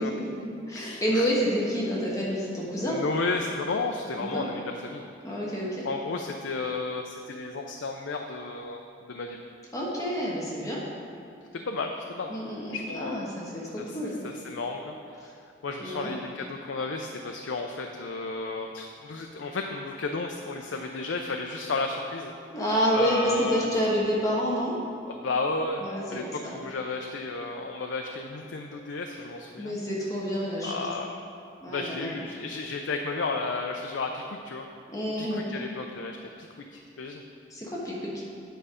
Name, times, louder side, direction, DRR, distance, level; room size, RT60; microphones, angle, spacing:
voice 1, 0.0-3.0 4.2-4.4 5.2-5.9 9.7-10.8 12.3-14.2 15.8-16.1 22.5-24.7 25.8-26.5 29.6-30.9 31.6-32.1 34.9-35.5 37.5-38.1, equal, 20° left, -5 dB, 1.2 m, -29 dB
voice 2, 0.7-1.3 2.9-5.0 5.8-8.8 9.1-9.4 11.5-12.3 12.7-13.3 13.8-14.0 14.2-15.3 15.6-22.3 22.9-23.7 25.1-29.7 30.6-31.2 31.7-34.7 35.2-37.2, left 3 dB, 90° left, 3 dB, 0.5 m, -33 dB
9.2 x 5.4 x 5.0 m, 2.6 s
head